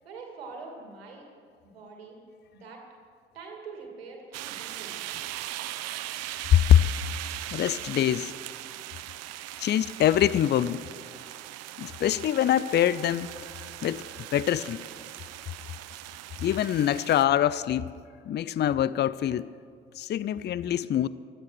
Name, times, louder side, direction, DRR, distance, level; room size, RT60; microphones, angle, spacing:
voice 1, 0.0-1.3 1.6-2.2 2.5-2.8 3.3-5.0, right 4 dB, 85° right, 2 dB, 2.3 m, -44 dB
sound 1, 4.3-17.3, right 14 dB, 55° right, 0.8 m, -39 dB
voice 2, 6.5-6.8 7.5-8.3 9.6-10.9 11.8-13.3 13.8-14.0 14.3-14.8 16.4-17.9 18.3-19.5 20.0-21.1, left 11 dB, 35° left, 18 dB, 0.5 m, -24 dB
17.0 x 13.0 x 6.1 m, 2.2 s
figure-of-eight pair, 50°, 30 cm